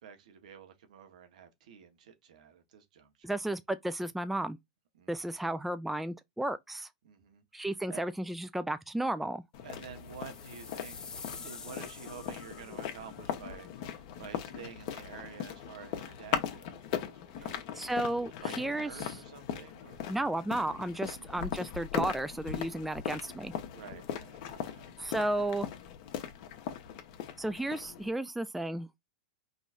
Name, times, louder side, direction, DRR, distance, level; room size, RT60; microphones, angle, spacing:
voice 1, 0.0-3.3 4.9-5.4 7.0-7.4 7.9-8.0 9.6-18.1 18.4-20.1 21.0-21.3 23.7-24.9, right 7 dB, 75° right, 1.5 m, -50 dB
voice 2, 3.2-4.6 5.1-6.9 7.5-9.4 17.8-18.3 18.6-19.2 20.1-23.5 25.0-25.7 27.4-28.9, right 1 dB, 5° right, 0.4 m, -33 dB
sound 1, 9.5-28.1, left 9 dB, 55° left, 1.1 m, -39 dB
sound 2, 9.9-13.1, left 5 dB, 20° left, 1.2 m, -48 dB
5.3 x 3.1 x 2.6 m
hypercardioid pair, 115°, 4 cm